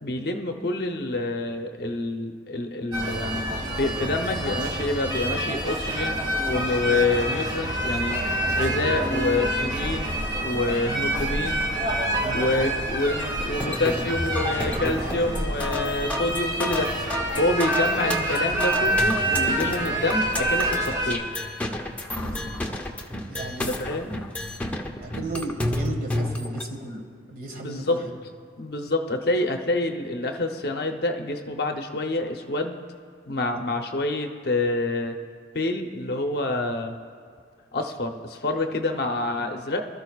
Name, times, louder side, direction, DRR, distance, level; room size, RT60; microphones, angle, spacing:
voice 1, 0.0-3.5 3.8-6.2 6.5-8.3 8.5-10.1 10.4-11.7 12.3-16.9 17.4-21.4 23.7-24.2 27.6-28.0 28.6-32.8 33.3-35.2 35.5-36.9 37.7-39.8, left 2 dB, 55° left, 4 dB, 0.8 m, -27 dB
sound 1, 2.9-21.1, right 1 dB, 25° right, 2.0 m, -27 dB
sound 2, 13.6-26.6, left 1 dB, 10° left, 0.8 m, -30 dB
voice 2, 22.2-22.7 23.3-23.8 25.0-28.1 33.5-33.6, right 2 dB, 50° right, 2 dB, 1.6 m, -36 dB
24.5 x 13.0 x 2.4 m, 2.2 s
head